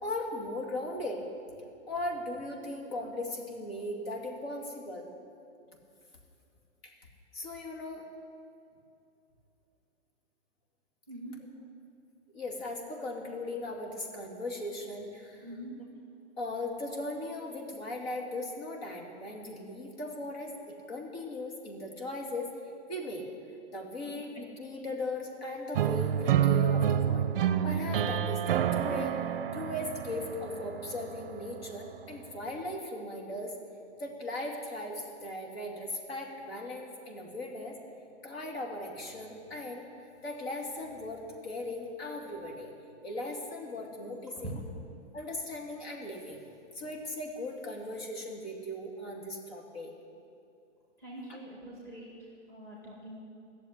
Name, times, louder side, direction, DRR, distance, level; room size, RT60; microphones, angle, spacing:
voice 1, 0.0-1.2 1.9-5.1 6.8-8.1 12.3-15.5 16.4-22.5 22.9-23.2 23.7-29.1 29.5-33.5 34.0-37.8 38.2-42.7 43.0-44.6 45.1-46.4 46.7-49.9 51.3-51.4, left 1 dB, 55° left, 0 dB, 2.5 m, -38 dB
voice 2, 11.1-11.4 15.4-15.8 24.0-24.1 51.0-52.1 52.5-53.2, right 1 dB, 5° left, -5 dB, 1.9 m, -44 dB
sound 1, 25.7-31.7, right 9 dB, 50° right, 0.6 m, -28 dB
14.5 x 7.1 x 9.8 m, 2.5 s
hypercardioid pair, 175°, 36 cm